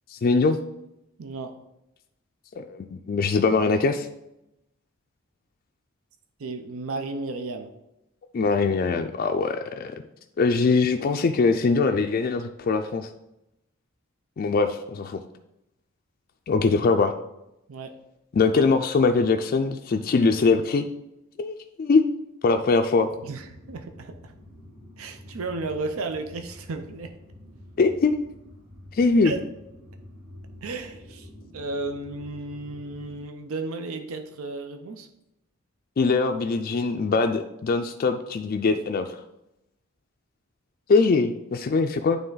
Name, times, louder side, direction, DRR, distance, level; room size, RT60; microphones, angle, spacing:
voice 1, 0.1-0.6 2.6-4.1 8.3-9.9 10.4-13.1 14.4-15.2 16.5-17.1 18.3-20.8 21.4-22.0 22.4-23.1 27.8-28.3 28.9-29.3 36.0-39.2 40.9-42.2, left 4 dB, 45° left, 5 dB, 0.3 m, -22 dB
voice 2, 1.2-1.5 6.4-7.7 17.7-17.9 23.2-24.3 25.0-27.1 29.2-29.4 30.6-31.3 31.5-35.1, right 3 dB, 90° right, 7 dB, 0.6 m, -33 dB
sound 1, 23.1-33.2, left 1 dB, 35° right, 1.7 m, -47 dB
9.0 x 3.4 x 3.9 m, 0.87 s
head